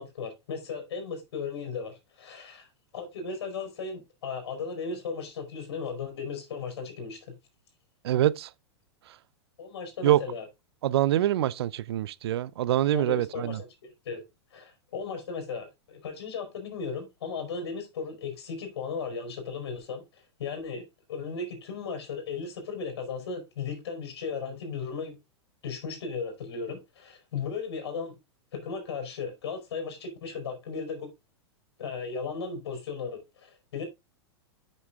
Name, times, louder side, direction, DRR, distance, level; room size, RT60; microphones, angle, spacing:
voice 1, 0.0-2.7 2.9-7.2 9.6-10.5 12.9-14.2 14.5-25.2 25.6-28.1 28.5-31.1 31.8-33.9, left 5 dB, 70° left, 4.5 m, -36 dB
voice 2, 8.0-8.5 10.0-10.2 10.8-13.6, right 13 dB, 70° right, 0.7 m, -25 dB
8.5 x 6.5 x 3.6 m
hypercardioid pair, 110°, 14 cm